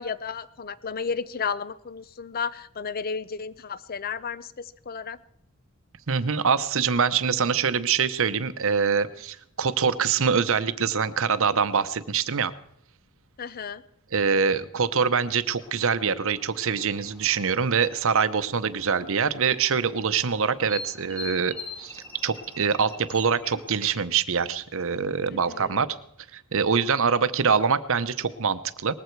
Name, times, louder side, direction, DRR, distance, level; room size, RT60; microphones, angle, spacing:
voice 1, 0.0-4.5 4.9-5.2 13.4-13.8 25.3-25.8, left 6 dB, 40° left, 16 dB, 0.6 m, -33 dB
voice 2, 6.1-12.5 14.1-25.9 26.3-28.9, right 6 dB, 65° right, 12 dB, 0.8 m, -24 dB
sound 1, 15.6-24.1, left 3 dB, 10° left, 2.2 m, -44 dB
19.5 x 14.5 x 4.7 m, 0.70 s
head